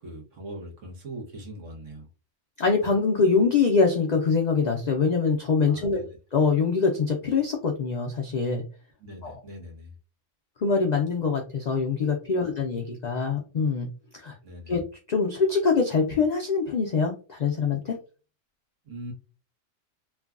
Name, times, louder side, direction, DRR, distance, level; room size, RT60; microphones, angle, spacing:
voice 1, 0.0-2.1 5.6-6.1 9.0-9.9 12.4-12.6 14.4-14.8 18.9-19.1, right 1 dB, 70° right, 1 dB, 1.3 m, -41 dB
voice 2, 2.6-6.0 6.3-8.6 9.2-9.3 10.6-13.9 14.2-14.3 14.7-14.8 15.1-18.0, left 5 dB, 90° left, 1 dB, 0.3 m, -24 dB
3.2 x 2.2 x 2.3 m, 0.35 s
omnidirectional pair, 1.3 m